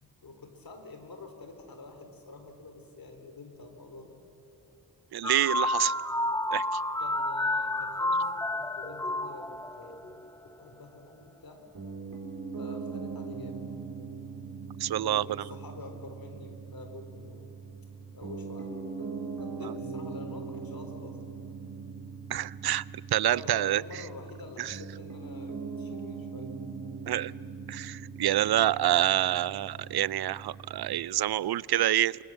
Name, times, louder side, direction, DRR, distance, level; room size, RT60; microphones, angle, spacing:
voice 1, 0.0-4.2 7.0-11.6 12.6-13.8 14.9-17.6 18.1-19.1 19.4-21.2 23.2-26.6, left 3 dB, 70° left, 3.6 m, -47 dB
voice 2, 5.1-5.9 6.5-6.6 14.8-15.2 22.3-22.8 23.1-23.8 27.1-27.3 27.7-32.2, right 12 dB, 85° right, 0.5 m, -27 dB
sound 1, 5.2-10.3, left 1 dB, 10° left, 0.8 m, -30 dB
Piano, 11.7-31.1, right 5 dB, 60° right, 4.7 m, -41 dB
28.5 x 23.0 x 7.4 m
wide cardioid pair, 95°, 37 cm